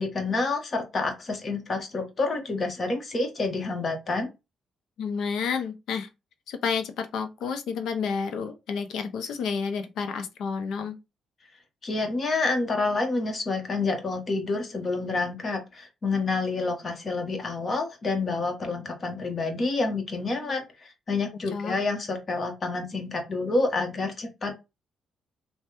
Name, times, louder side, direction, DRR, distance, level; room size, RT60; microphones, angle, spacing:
voice 1, 0.0-4.3 11.8-24.6, left 3 dB, 40° left, 1.1 m, -28 dB
voice 2, 5.0-6.1 6.5-11.0 21.5-21.8, left 6 dB, 75° left, 0.6 m, -30 dB
3.2 x 2.2 x 2.9 m
cardioid pair, 90°, 0 cm